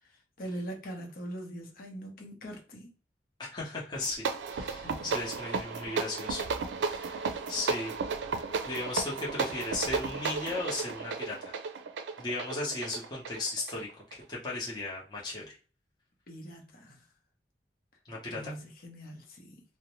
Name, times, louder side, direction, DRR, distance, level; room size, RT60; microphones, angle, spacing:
voice 1, 0.0-2.9 4.8-5.1 7.3-7.5 16.3-17.1 18.3-19.6, right 1 dB, 55° left, 0.8 m, -42 dB
voice 2, 3.4-6.5 6.8-7.9 8.3-11.5 12.2-15.6 18.1-18.5, left 2 dB, 25° left, 0.8 m, -36 dB
sound 1, 3.9-14.2, right 4 dB, 90° right, 0.4 m, -34 dB
2.5 x 2.1 x 3.0 m
head